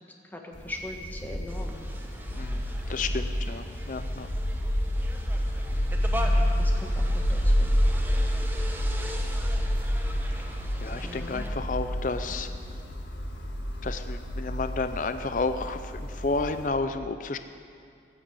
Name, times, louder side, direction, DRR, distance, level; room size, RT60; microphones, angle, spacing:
voice 1, 0.0-1.8 6.1-7.7 11.0-11.4, left 1 dB, 10° left, 1 dB, 1.6 m, -41 dB
sound 1, 0.5-16.7, equal, 80° left, 1.9 m, -29 dB
sound 2, 1.5-11.5, equal, 10° right, 1.1 m, -41 dB
voice 2, 2.3-4.3 10.8-12.5 13.8-17.4, left 3 dB, 45° left, 9 dB, 0.5 m, -31 dB
15.0 x 10.5 x 8.3 m, 2.4 s
head